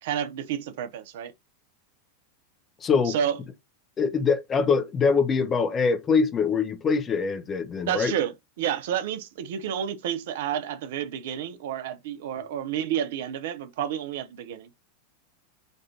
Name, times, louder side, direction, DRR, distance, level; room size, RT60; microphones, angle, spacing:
voice 1, 0.0-1.3 3.0-3.4 7.9-14.7, right 9 dB, 60° right, 0.6 m, -30 dB
voice 2, 2.8-3.1 4.0-8.1, left 5 dB, 25° left, 0.8 m, -23 dB
5.2 x 2.5 x 2.8 m
figure-of-eight pair, 90°, 0 cm